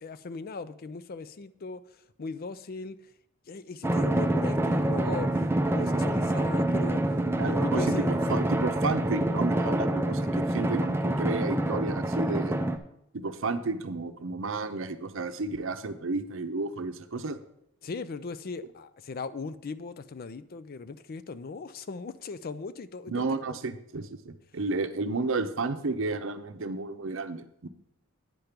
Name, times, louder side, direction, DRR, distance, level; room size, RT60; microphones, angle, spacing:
voice 1, 0.0-1.8 2.2-3.0 3.5-5.3 5.7-8.2 10.4-10.5 17.8-23.6, left 4 dB, 45° left, 13 dB, 0.4 m, -38 dB
Drum, 3.8-12.8, right 1 dB, 10° right, 0.5 m, -26 dB
voice 2, 7.4-7.8 8.3-12.7 13.1-17.4 23.1-27.7, right 3 dB, 65° right, 9 dB, 0.7 m, -32 dB
9.2 x 5.1 x 5.9 m, 0.77 s
head